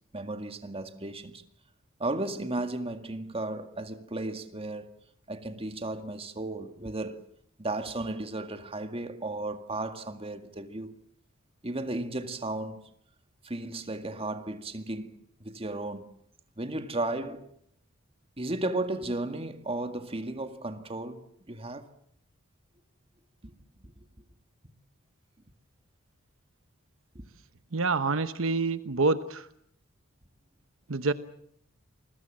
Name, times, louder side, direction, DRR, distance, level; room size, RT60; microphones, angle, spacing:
voice 1, 0.1-1.4 2.0-4.9 5.3-7.2 7.6-11.0 11.6-12.8 13.4-16.1 16.6-17.5 18.4-21.9 23.4-23.5 23.8-24.1 27.1-27.2, right 2 dB, 30° right, 2.0 m, -34 dB
voice 2, 27.7-29.5 30.9-31.1, right 3 dB, 70° right, 1.0 m, -27 dB
29.0 x 21.5 x 7.5 m
head